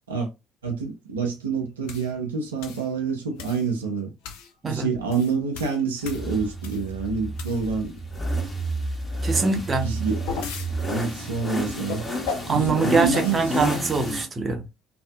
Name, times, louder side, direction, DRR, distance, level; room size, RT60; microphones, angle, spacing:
voice 1, 0.6-4.1 4.7-7.9 9.8-10.4 10.9-12.0 12.5-13.6, right 5 dB, 80° right, 0.5 m, -27 dB
sound 1, 1.9-2.1 2.6-2.9 3.4-3.7 4.2-4.5 5.0-6.9 7.3-7.9 9.8-10.7 11.9-12.6 13.1-13.4, left 6 dB, 65° left, 0.4 m, -35 dB
sound 2, 6.1-14.3, right 1 dB, 20° left, 1.1 m, -30 dB
voice 2, 9.2-9.9 12.5-14.6, right 4 dB, 30° right, 0.7 m, -23 dB
2.6 x 2.4 x 2.3 m
figure-of-eight pair, 55°, 0 cm